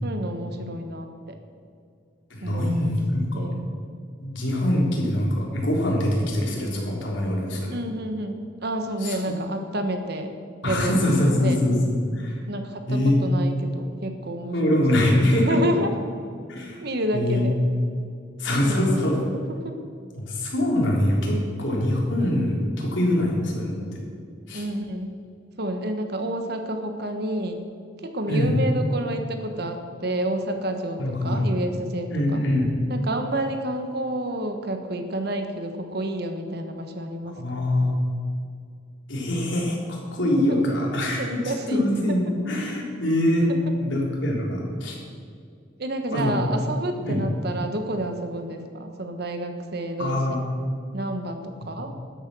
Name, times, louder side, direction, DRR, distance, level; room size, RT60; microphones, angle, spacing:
voice 1, 0.0-1.4 2.4-2.9 3.3-3.7 7.7-10.3 10.7-11.6 12.5-15.9 16.8-17.6 18.6-19.1 19.6-19.8 24.5-25.2 25.6-27.7 28.0-32.4 32.9-37.4 40.5-40.6 41.0-41.9 45.8-50.4 50.9-51.9, right 1 dB, 60° right, 6 dB, 1.4 m, -29 dB
voice 2, 2.3-3.5 4.2-7.8 9.0-9.4 10.6-12.4 12.9-13.3 14.5-15.6 16.5-16.8 17.1-17.5 18.4-19.2 20.1-23.8 24.5-24.6 28.3-28.5 31.0-31.4 32.1-32.7 37.4-38.0 39.1-41.3 41.7-43.5 43.8-45.0 46.1-46.4 47.0-47.2 50.0-50.4 51.6-51.9, left 1 dB, 85° left, -2 dB, 3.7 m, -23 dB
13.0 x 10.0 x 6.3 m, 2.3 s
head